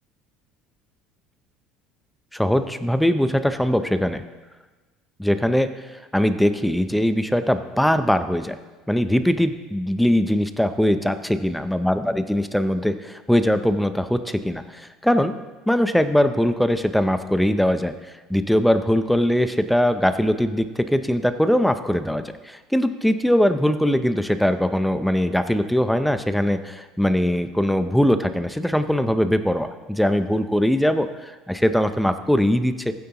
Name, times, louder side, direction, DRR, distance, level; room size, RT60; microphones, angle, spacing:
voice 1, 2.3-4.2 5.2-8.6 8.9-15.3 15.7-17.9 18.3-32.9, equal, ahead, 10 dB, 0.5 m, -21 dB
16.0 x 9.4 x 2.9 m, 1.3 s
cardioid pair, 145°, 0 cm